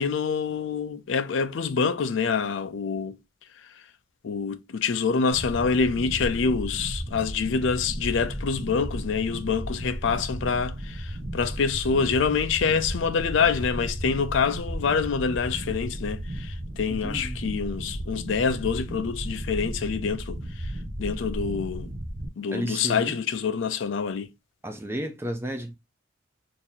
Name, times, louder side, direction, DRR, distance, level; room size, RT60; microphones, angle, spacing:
voice 1, 0.0-3.2 3.6-3.8 4.2-20.7 21.0-21.9 22.4-24.3, left 5 dB, 70° left, 0.4 m, -26 dB
sound 1, 5.3-22.3, equal, 60° right, 1.0 m, -34 dB
voice 2, 16.9-17.5 22.5-23.2 24.6-25.8, equal, 10° right, 0.4 m, -32 dB
2.9 x 2.6 x 3.7 m
head